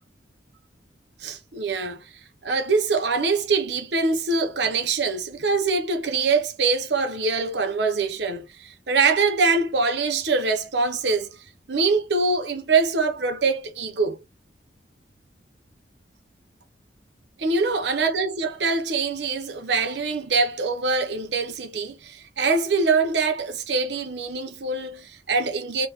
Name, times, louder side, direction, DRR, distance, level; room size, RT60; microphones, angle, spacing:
voice 1, 1.2-2.1 2.4-14.2 17.4-25.9, right 4 dB, 70° right, 0.7 m, -24 dB
3.8 x 2.1 x 3.0 m
head